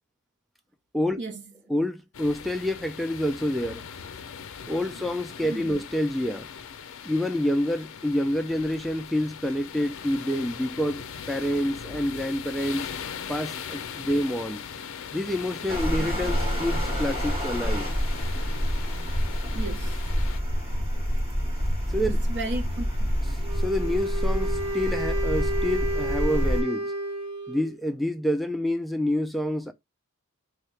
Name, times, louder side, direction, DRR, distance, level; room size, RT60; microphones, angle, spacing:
voice 1, 1.7-3.8 4.6-6.5 7.0-11.0 11.3-12.9 13.3-14.6 15.1-17.9 21.9-22.2 23.5-26.9 27.5-29.7, left 1 dB, ahead, 0.3 m, -28 dB
sound 1, 2.1-20.4, left 7 dB, 65° left, 0.5 m, -40 dB
voice 2, 5.5-5.8 16.0-16.2 18.7-19.1 19.5-20.0 22.1-23.4, right 2 dB, 50° right, 0.7 m, -36 dB
sound 2, 15.7-26.6, equal, 25° right, 1.7 m, -27 dB
Wind instrument woodwind instrument, 23.4-27.8, right 1 dB, 80° right, 1.1 m, -31 dB
3.5 x 2.7 x 3.3 m
head